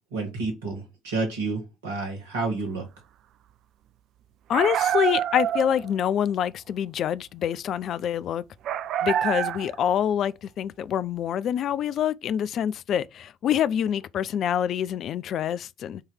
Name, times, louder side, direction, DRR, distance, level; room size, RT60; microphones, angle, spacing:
voice 1, 0.1-2.9, right 3 dB, 75° right, 2.3 m, -30 dB
voice 2, 4.5-8.4 9.0-16.0, left 9 dB, 50° left, 0.5 m, -26 dB
sound 1, 4.5-5.9 8.6-9.8, right 10 dB, 55° right, 0.3 m, -26 dB
7.3 x 3.2 x 5.5 m
figure-of-eight pair, 55°, 0 cm